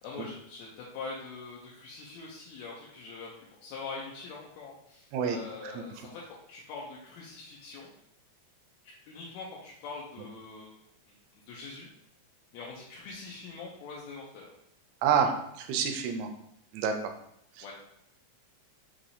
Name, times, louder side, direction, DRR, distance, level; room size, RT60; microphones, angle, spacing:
voice 1, 0.0-7.9 9.1-10.8 11.1-11.2 11.5-11.9 12.5-14.5 15.1-15.3 17.6-17.7, left 4 dB, 75° left, -4 dB, 1.8 m, -43 dB
voice 2, 15.6-16.3 16.7-17.1 17.5-17.7, right 7 dB, 80° right, 5 dB, 1.6 m, -28 dB
5.6 x 2.9 x 2.7 m, 0.74 s
omnidirectional pair, 3.4 m